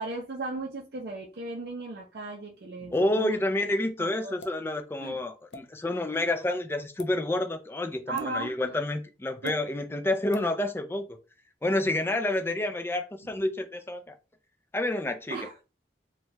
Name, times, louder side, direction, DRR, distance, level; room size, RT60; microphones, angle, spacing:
voice 1, 0.0-3.4 4.0-4.4 5.0-5.2 8.1-8.5 9.4-9.5 15.3-15.5, right 3 dB, 60° right, 0.5 m, -36 dB
voice 2, 2.9-11.1 11.6-14.1 14.7-15.4, left 1 dB, 15° left, 0.3 m, -29 dB
sound 1, 4.4-4.6 5.5-5.6 6.9-7.1 8.2-8.3 9.4-9.6 10.3-10.5, left 2 dB, 90° left, 0.4 m, -44 dB
2.8 x 2.2 x 3.1 m
head